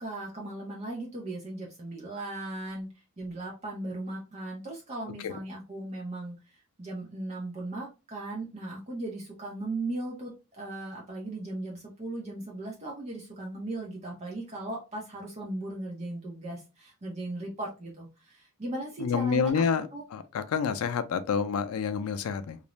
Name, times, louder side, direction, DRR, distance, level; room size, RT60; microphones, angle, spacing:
voice 1, 0.0-2.9 3.2-19.6 19.9-20.1, right 2 dB, 30° right, 0.6 m, -37 dB
voice 2, 19.0-22.6, left 6 dB, 80° left, 0.4 m, -28 dB
2.4 x 2.0 x 2.9 m
head